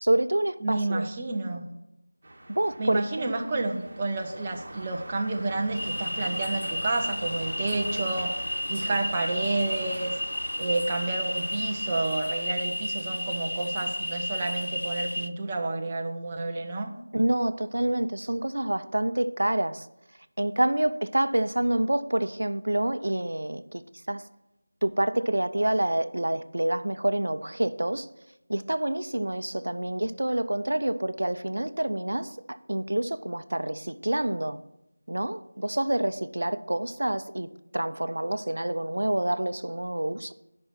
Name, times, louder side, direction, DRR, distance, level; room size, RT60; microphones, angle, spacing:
voice 1, 0.0-1.0 2.5-3.5 17.1-19.9 20.4-24.3 24.8-28.1 28.5-34.6 35.1-37.5 37.7-40.3, right 1 dB, 80° right, 0.6 m, -27 dB
voice 2, 0.6-1.6 2.8-10.2 10.6-16.9, right 2 dB, 15° right, 0.6 m, -30 dB
sound 1, 2.2-12.5, right 1 dB, 40° right, 1.6 m, -43 dB
sound 2, 5.7-15.3, left 1 dB, 70° left, 0.7 m, -32 dB
10.0 x 5.4 x 5.8 m
figure-of-eight pair, 175°, 0 cm